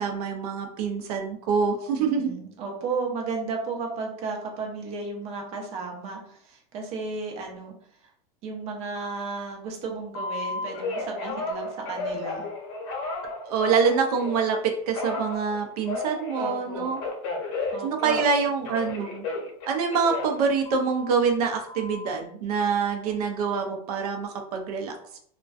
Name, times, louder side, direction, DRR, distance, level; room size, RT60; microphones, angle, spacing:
voice 1, 0.0-2.3 13.5-17.0 17.8-19.3 19.7-25.2, right 5 dB, 80° right, 4 dB, 0.5 m, -26 dB
voice 2, 2.0-7.7 8.4-12.4 16.4-16.9 17.7-18.3, right 4 dB, 35° right, 1 dB, 0.6 m, -34 dB
Telephone, 10.1-14.5 14.9-18.4 18.6-21.2 21.7-22.2, left 3 dB, 55° left, 0.7 m, -33 dB
2.5 x 2.1 x 2.3 m, 0.65 s
supercardioid pair, 155°, 19 cm